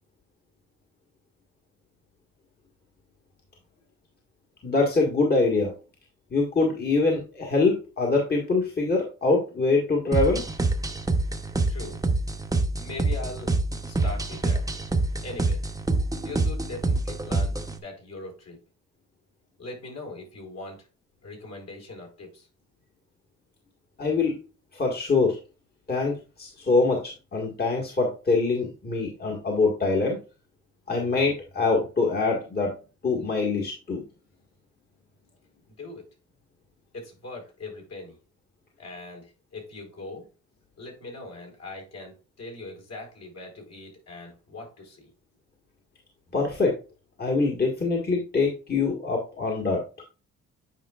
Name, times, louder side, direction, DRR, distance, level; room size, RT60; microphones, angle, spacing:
voice 1, 4.6-5.8 6.3-10.4 24.0-24.4 24.7-25.4 25.9-30.2 30.9-32.7 33.0-34.0 46.3-46.8 47.2-49.8, left 3 dB, 30° left, -1 dB, 1.7 m, -24 dB
sound 1, 10.1-17.8, right 2 dB, 10° right, 0.9 m, -26 dB
voice 2, 11.7-12.0 12.7-13.5 13.9-14.6 15.2-15.6 16.2-18.6 19.6-20.8 21.2-22.5 35.8-36.0 36.9-38.2 38.8-40.3 40.8-45.1, left 2 dB, 60° left, 0 dB, 4.2 m, -40 dB
9.2 x 5.2 x 2.4 m, 0.32 s
cardioid pair, 90°, 30 cm